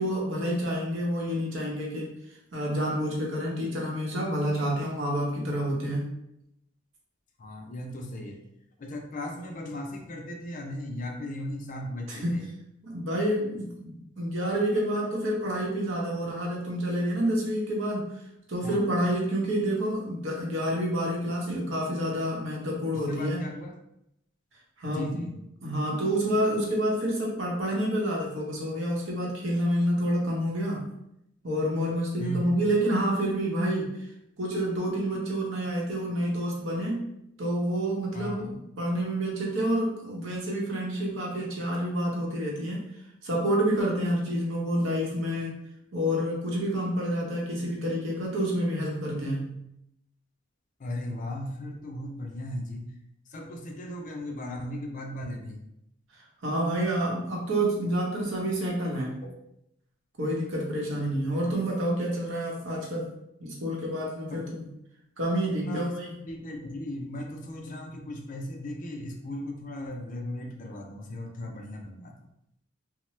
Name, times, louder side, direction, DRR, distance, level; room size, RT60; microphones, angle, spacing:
voice 1, 0.0-2.1 2.5-6.1 12.1-12.5 12.8-18.1 18.5-23.4 24.8-25.3 25.6-30.9 31.4-34.0 34.4-37.1 37.4-42.8 43.2-45.5 45.9-49.6 56.4-59.1 60.2-63.1 63.4-64.7 65.2-66.2, equal, 65° right, -2 dB, 0.8 m, -28 dB
voice 2, 7.4-8.4 8.8-12.2 18.6-18.8 23.1-23.7 24.9-25.3 32.2-32.5 38.1-38.5 50.8-52.9 53.3-55.6 64.3-64.4 65.6-65.9 66.3-72.1, left 1 dB, 40° left, 2 dB, 0.4 m, -37 dB
2.8 x 2.1 x 3.1 m, 0.80 s
head